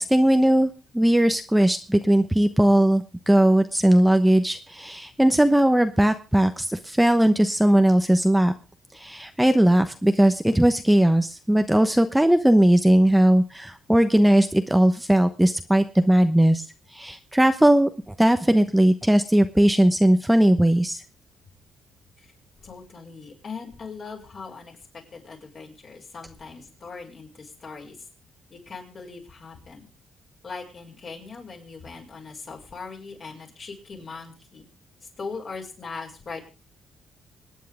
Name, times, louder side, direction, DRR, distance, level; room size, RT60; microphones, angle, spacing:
voice 1, 0.0-8.5 8.9-16.6 16.9-17.9 18.2-21.0, right 1 dB, 5° right, 7 dB, 1.0 m, -19 dB
voice 2, 22.6-24.8 25.1-28.0 28.5-29.9 30.4-34.7 35.2-36.4, left 4 dB, 50° left, 1 dB, 6.5 m, -40 dB
26.0 x 9.4 x 3.7 m, 0.33 s
cardioid pair, 90°, 0 cm